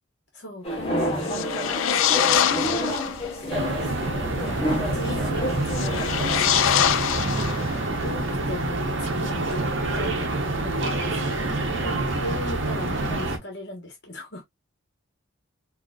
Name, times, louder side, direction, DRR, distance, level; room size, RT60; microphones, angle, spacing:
voice 1, 0.3-2.0 2.3-3.0 4.7-6.1 6.4-6.8 8.0-9.6 9.9-11.5 11.8-14.4, left 1 dB, 55° left, 1.2 m, -37 dB
sound 1, 0.6-6.9, equal, 30° left, 1.1 m, -29 dB
sound 2, 1.2-3.3 5.6-8.0, left 10 dB, 85° left, 0.4 m, -24 dB
sound 3, 3.5-13.4, right 2 dB, 70° right, 0.9 m, -27 dB
voice 2, 7.2-8.0, right 2 dB, 30° right, 0.4 m, -34 dB
3.9 x 2.8 x 2.3 m
head